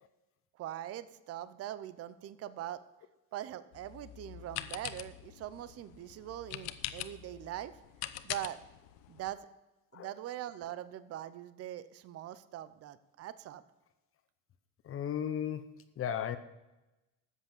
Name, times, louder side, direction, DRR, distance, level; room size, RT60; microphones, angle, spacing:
voice 1, 0.6-2.8 3.3-7.8 8.2-8.6 9.1-9.5 9.9-13.6, right 12 dB, 40° right, 15 dB, 0.7 m, -42 dB
sound 1, 3.7-9.3, left 14 dB, 75° left, 0.9 m, -44 dB
voice 2, 14.8-16.4, left 9 dB, 35° left, 11 dB, 0.7 m, -35 dB
13.5 x 8.3 x 7.1 m, 1.0 s
cardioid pair, 155°, 39 cm